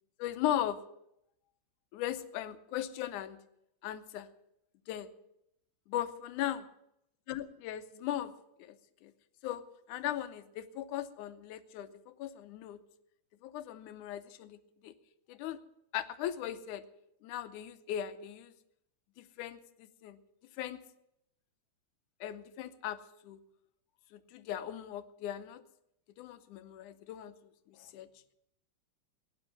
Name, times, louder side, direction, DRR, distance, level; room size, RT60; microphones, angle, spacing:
voice 1, 0.2-0.8 1.9-3.4 3.8-4.3 4.9-5.1 5.9-6.7 7.3-8.3 8.6-8.8 9.0-9.1 9.4-12.8 13.4-14.9 15.3-15.6 15.9-16.8 17.2-18.5 19.2-20.2 20.6-20.8 22.2-23.0 23.2-23.4 24.1-25.6 26.2-27.3 27.7-28.1, left 11 dB, 85° left, 11 dB, 2.3 m, -38 dB
17.5 x 10.0 x 5.8 m, 0.81 s
omnidirectional pair, 3.4 m